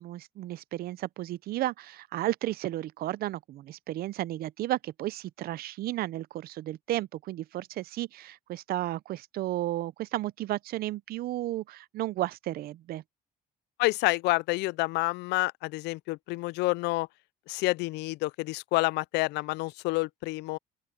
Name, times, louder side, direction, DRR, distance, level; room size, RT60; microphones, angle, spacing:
voice 1, 0.0-13.0, right 15 dB, 65° right, 0.5 m, -33 dB
voice 2, 13.8-17.1 17.5-20.6, left 22 dB, 85° left, 0.4 m, -28 dB
open air
cardioid pair, 110°, 17 cm